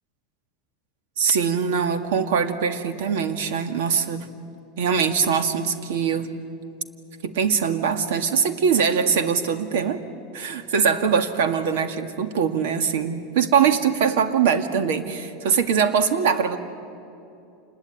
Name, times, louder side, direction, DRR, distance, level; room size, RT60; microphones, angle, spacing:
voice 1, 1.2-4.3 4.8-6.3 7.2-10.0 10.3-16.6, right 6 dB, 80° right, 8 dB, 2.0 m, -22 dB
27.5 x 21.0 x 9.2 m, 2.7 s
supercardioid pair, 150°, 0 cm